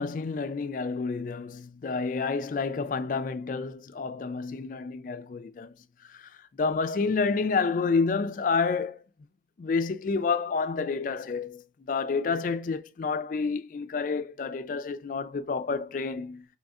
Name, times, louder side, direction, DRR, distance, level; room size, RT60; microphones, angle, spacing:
voice 1, 0.0-5.7 6.1-9.0 9.6-11.6 11.9-16.4, left 4 dB, 45° left, 0.3 m, -29 dB
5.2 x 3.4 x 2.4 m
head